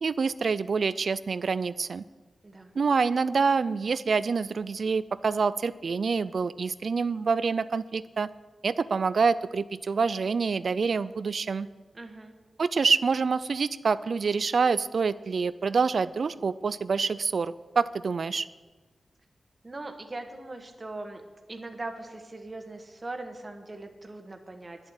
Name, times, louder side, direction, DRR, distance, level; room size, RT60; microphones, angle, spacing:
voice 1, 0.0-2.0 2.8-8.3 8.6-11.7 12.6-18.5, right 5 dB, 60° right, 16 dB, 0.4 m, -26 dB
voice 2, 11.9-12.3 19.6-21.2 21.5-24.9, right 2 dB, 25° right, 4 dB, 1.4 m, -40 dB
11.0 x 7.2 x 9.6 m, 1.3 s
wide cardioid pair, 130°, 0 cm